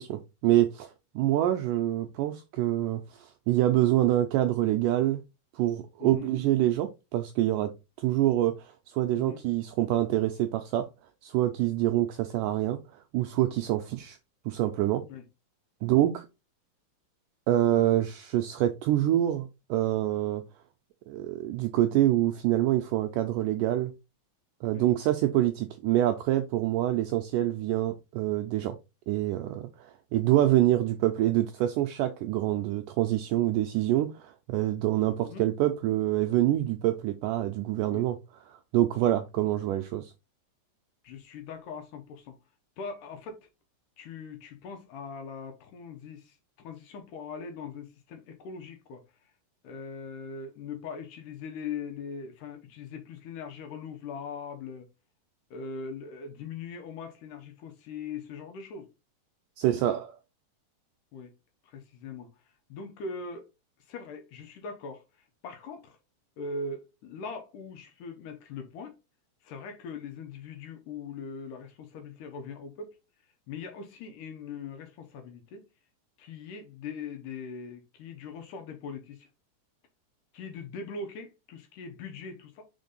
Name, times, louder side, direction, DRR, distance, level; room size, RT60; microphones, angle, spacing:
voice 1, 0.0-5.2 5.6-7.7 8.0-10.8 11.2-12.8 13.1-14.2 14.5-15.0 15.8-16.3 17.5-20.4 21.1-23.9 24.6-28.8 29.1-38.2 38.5-40.1 59.6-60.2, right 13 dB, 85° right, 1.9 m, -26 dB
voice 2, 6.0-6.3 9.1-9.4 15.1-15.3 19.0-19.2 24.7-24.9 35.2-35.5 37.9-38.1 41.0-42.4 42.8-43.5 44.0-49.0 49.6-54.9 55.5-58.9 61.1-61.3 61.6-62.3 62.7-63.5 63.9-66.0 66.4-69.0 69.4-73.0 73.5-75.7 76.2-79.3 80.3-82.7, left 4 dB, 70° left, 2.3 m, -41 dB
5.2 x 4.6 x 4.0 m
omnidirectional pair, 4.3 m